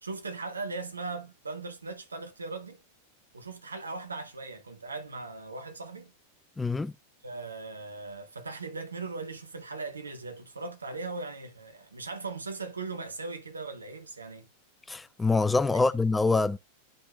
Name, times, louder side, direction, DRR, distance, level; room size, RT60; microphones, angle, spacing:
voice 1, 0.0-2.8 3.3-6.1 7.2-14.5 15.7-15.8, right 3 dB, 75° right, 1.5 m, -39 dB
voice 2, 6.6-6.9 14.9-16.6, left 3 dB, 10° left, 0.4 m, -25 dB
11.5 x 5.4 x 2.3 m
figure-of-eight pair, 90°, 0 cm